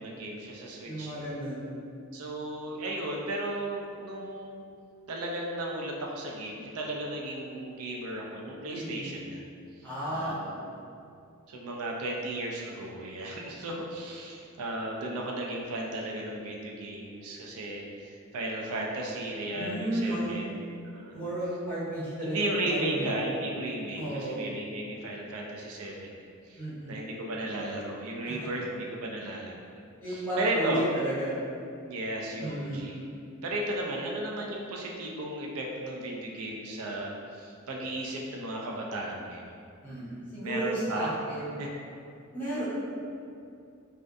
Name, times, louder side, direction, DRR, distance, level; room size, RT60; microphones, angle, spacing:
voice 1, 0.0-1.2 2.1-4.6 5.1-9.4 10.1-10.8 11.5-21.2 22.2-26.1 26.5-29.5 30.1-30.8 31.9-33.0 33.4-39.5 40.4-41.1 41.6-41.7, right 1 dB, 90° right, -1 dB, 0.4 m, -35 dB
voice 2, 0.8-1.7 8.7-9.1 9.8-10.8 19.5-20.4 21.1-23.1 24.0-24.4 26.5-27.0 28.2-28.5 30.0-31.3 32.4-32.8 39.8-41.6 42.3-42.6, right 1 dB, 10° left, -11 dB, 0.7 m, -33 dB
2.4 x 2.2 x 2.5 m, 2.4 s
head